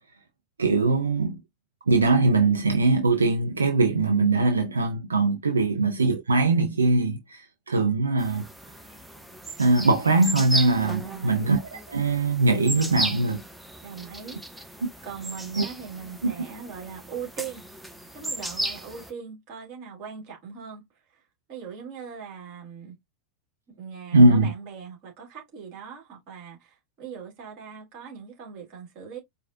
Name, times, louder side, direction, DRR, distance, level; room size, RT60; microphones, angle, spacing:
voice 1, 0.6-1.4 1.9-8.4 9.6-13.4 15.6-15.7 16.2-16.3 24.1-24.5, right 3 dB, 75° right, 0.5 m, -21 dB
sound 1, 8.2-19.1, right 1 dB, ahead, 0.7 m, -35 dB
voice 2, 11.0-11.5 13.8-14.7 15.0-17.7 18.1-20.8 21.1-21.2 21.5-23.0 23.7-29.2, right 6 dB, 40° right, 2.0 m, -40 dB
4.6 x 2.3 x 2.5 m
figure-of-eight pair, 90°, 0 cm